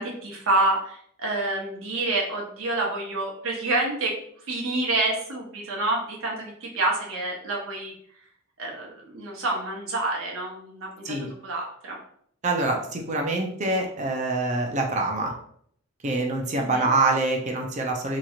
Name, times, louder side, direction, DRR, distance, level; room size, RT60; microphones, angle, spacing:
voice 1, 0.0-4.1 4.5-7.9 8.6-12.0 16.6-16.9, right 2 dB, 70° right, -2 dB, 0.9 m, -28 dB
voice 2, 12.4-15.3 16.0-18.2, right 2 dB, 35° right, 1 dB, 0.5 m, -25 dB
3.0 x 2.8 x 2.4 m, 0.64 s
head